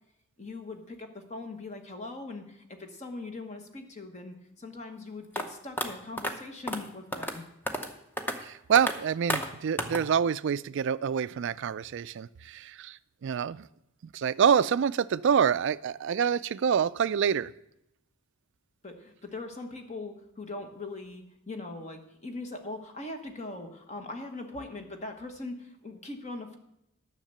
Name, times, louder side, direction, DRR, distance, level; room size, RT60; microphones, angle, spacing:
voice 1, 0.4-7.4 18.8-26.6, left 2 dB, 30° left, 5 dB, 1.1 m, -41 dB
sound 1, 5.3-5.4 5.8-5.9 6.2-6.3 6.7-6.8 7.1-7.4 7.7-7.9 8.2-8.3 8.7-8.9 9.3-9.5 9.8-10.0, equal, 10° left, 0.7 m, -30 dB
voice 2, 8.4-13.7 14.1-17.5, right 7 dB, 55° right, 16 dB, 0.3 m, -26 dB
10.5 x 6.6 x 6.7 m, 0.81 s
head